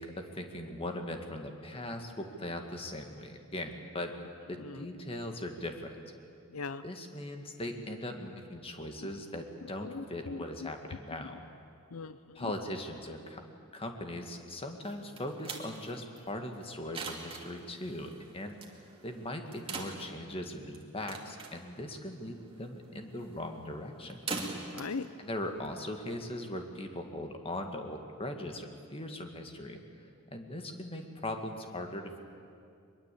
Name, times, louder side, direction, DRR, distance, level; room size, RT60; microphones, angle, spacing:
voice 1, 0.0-4.1 4.5-6.0 6.8-11.4 12.4-13.4 13.7-18.6 19.0-24.2 25.2-29.8 30.3-32.2, left 1 dB, 25° left, 4 dB, 2.0 m, -39 dB
voice 2, 6.5-6.8 9.8-10.7 11.9-12.5 24.7-25.1, left 4 dB, 80° left, 13 dB, 0.6 m, -39 dB
sound 1, 14.8-26.3, right 3 dB, 25° right, 2.6 m, -44 dB
22.5 x 22.0 x 8.5 m, 2.5 s
head